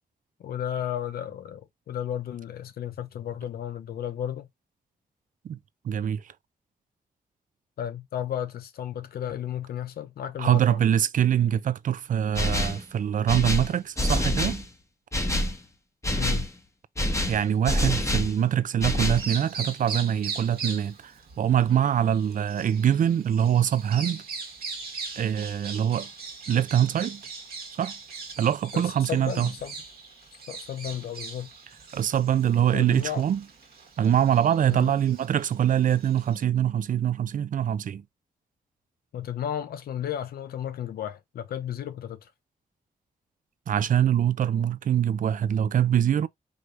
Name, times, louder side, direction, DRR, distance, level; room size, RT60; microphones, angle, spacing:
voice 1, 0.4-4.5 7.8-10.9 16.1-16.5 28.7-29.7 30.3-31.5 32.7-33.2 34.7-34.9 39.1-42.3, left 10 dB, 85° left, 0.6 m, -33 dB
voice 2, 5.8-6.2 10.4-14.6 17.3-24.2 25.2-26.1 26.5-27.2 27.7-28.0 28.4-29.5 31.9-33.4 34.0-38.0 43.7-46.3, right 9 dB, 60° right, 0.4 m, -24 dB
sound 1, 12.3-12.8 13.3-14.6 15.1-15.6 16.0-16.5 17.0-18.3 18.8-19.3, left 1 dB, 20° left, 1.1 m, -26 dB
Bird vocalization bird call bird song, 19.0-36.4, right 4 dB, 80° right, 1.3 m, -40 dB
4.8 x 3.1 x 2.5 m
cardioid pair, 70°, 15 cm